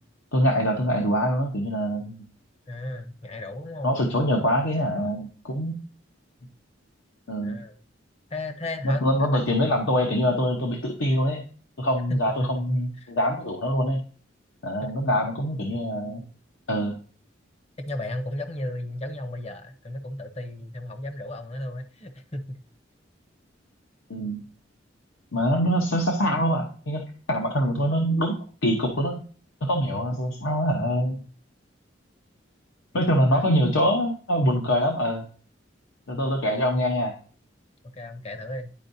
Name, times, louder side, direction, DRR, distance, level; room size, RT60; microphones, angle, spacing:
voice 1, 0.3-2.1 3.8-5.7 7.3-7.6 8.8-11.4 11.8-14.0 14.6-16.2 16.7-16.9 24.1-24.4 25.3-27.0 27.3-28.4 28.6-29.2 29.6-31.2 32.9-35.2 36.1-37.1, equal, 85° left, 2 dB, 0.9 m, -24 dB
voice 2, 2.7-3.9 7.4-7.8 8.3-9.4 12.4-12.6 13.0-13.1 17.9-22.6 33.2-33.5 37.9-38.7, left 1 dB, 35° left, 6 dB, 0.7 m, -34 dB
10.5 x 4.6 x 2.6 m, 0.41 s
head